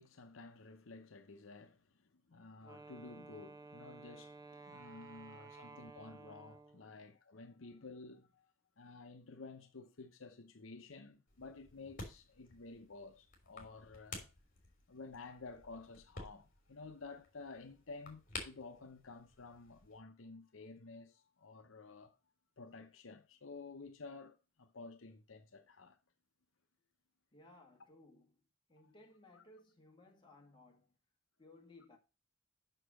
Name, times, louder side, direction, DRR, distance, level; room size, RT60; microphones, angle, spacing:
voice 1, 0.0-14.3 14.9-22.2 22.6-26.0 29.3-29.4, left 3 dB, 70° left, 0.8 m, -52 dB
Wind instrument woodwind instrument, 2.6-6.9, right 3 dB, 20° right, 0.8 m, -54 dB
sound 1, 11.3-20.0, left 3 dB, 45° left, 3.1 m, -52 dB
voice 2, 27.3-28.4 28.7-31.0 31.4-32.0, left 2 dB, 25° left, 2.0 m, -62 dB
6.6 x 6.1 x 6.4 m
head